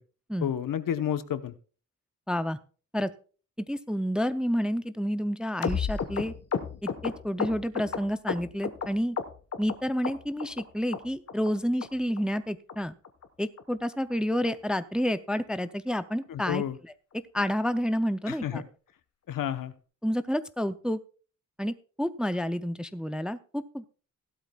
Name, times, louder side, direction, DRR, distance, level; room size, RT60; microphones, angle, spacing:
voice 1, 0.4-1.5 16.3-16.8 18.3-18.6 19.3-19.7, left 10 dB, 80° left, 12 dB, 0.9 m, -30 dB
voice 2, 2.3-2.6 2.9-3.1 3.6-6.3 6.8-9.2 9.6-13.0 13.4-16.6 17.3-18.6 20.0-21.0 21.6-23.8, equal, 5° right, 12 dB, 0.4 m, -29 dB
sound 1, 5.6-8.9 9.2-9.7 10.0-10.6 10.9-11.0 11.3-11.5 11.8-11.9 12.2-12.4 12.7-12.8 13.0-13.3 13.6-13.7 13.9-14.1 14.5-14.6 14.8-15.0 15.3-15.4, left 6 dB, 50° left, 1.1 m, -32 dB
16.0 x 12.5 x 2.3 m, 0.38 s
wide cardioid pair, 180°, 32 cm